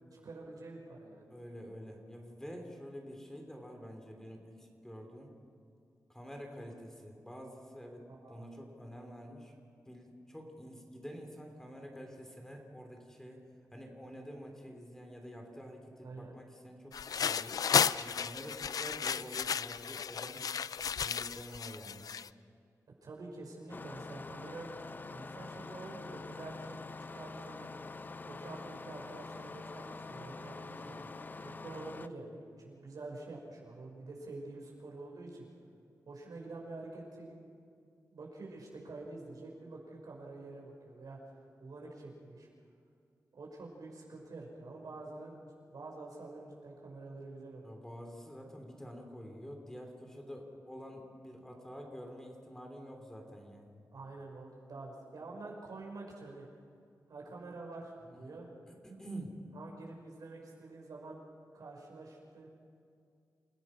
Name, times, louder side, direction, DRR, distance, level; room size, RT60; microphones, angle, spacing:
voice 1, 0.1-1.3 8.1-8.5 16.0-16.3 23.0-24.7 25.1-27.7 28.3-31.0 31.4-35.5 36.1-37.4 38.1-42.5 43.3-47.7 53.9-56.5 57.1-58.5 59.5-61.2 61.5-62.5, right 3 dB, 75° right, -2 dB, 5.9 m, -47 dB
voice 2, 1.3-5.3 6.1-9.5 9.8-13.4 13.7-17.6 18.0-20.4 21.0-22.0 30.8-31.1 47.6-53.7 58.1-58.4 58.7-59.4, equal, 10° left, 2 dB, 3.1 m, -48 dB
sound 1, 16.9-22.3, left 7 dB, 70° left, 0.4 m, -33 dB
Engine starting, 23.7-32.1, left 3 dB, 30° left, 0.6 m, -45 dB
28.5 x 17.0 x 6.2 m, 2.4 s
wide cardioid pair, 110°, 6 cm